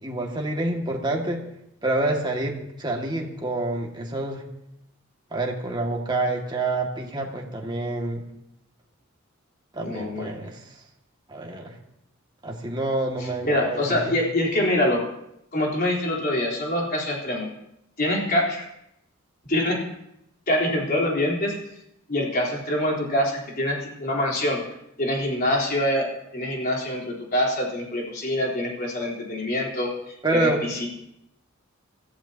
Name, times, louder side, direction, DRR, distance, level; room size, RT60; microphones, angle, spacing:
voice 1, 0.0-1.5 1.8-4.4 5.3-8.3 9.7-10.6 11.3-11.7 12.4-14.2 30.2-30.9, right 2 dB, 20° right, 0 dB, 2.0 m, -27 dB
voice 2, 9.8-10.3 13.2-15.0 15.5-17.5 18.0-18.7 19.4-19.9 20.5-21.5 22.1-24.6 25.0-30.9, left 1 dB, 45° left, -2 dB, 3.9 m, -25 dB
24.5 x 14.5 x 2.9 m, 0.80 s
head